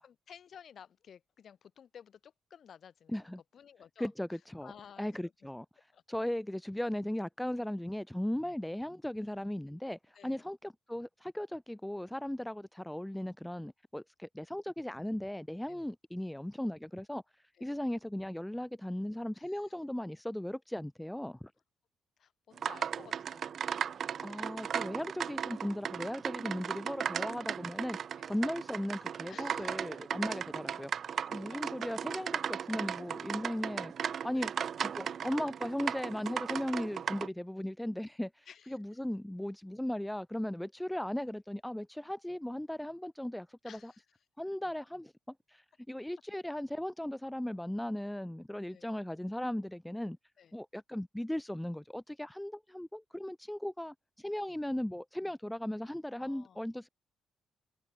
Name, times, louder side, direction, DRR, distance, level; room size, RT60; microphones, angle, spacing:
voice 1, 0.0-5.3 5.9-6.0 10.1-10.5 15.7-15.8 17.5-17.7 19.3-19.7 22.2-23.8 28.1-28.3 29.3-30.0 31.5-31.6 32.8-32.9 34.3-34.5 38.5-38.8 43.6-44.2 48.7-48.9 50.4-50.5 56.2-56.6, left 8 dB, 55° left, 7.9 m, -55 dB
voice 2, 3.1-3.4 4.0-4.7 5.0-5.7 6.1-17.2 17.6-21.5 24.2-28.0 28.2-30.9 31.3-33.9 34.2-34.5 34.8-43.9 44.4-50.2 50.5-56.9, left 1 dB, 5° left, 0.6 m, -37 dB
sound 1, 22.6-37.3, right 8 dB, 55° right, 0.5 m, -37 dB
cardioid pair, 90°, 0 cm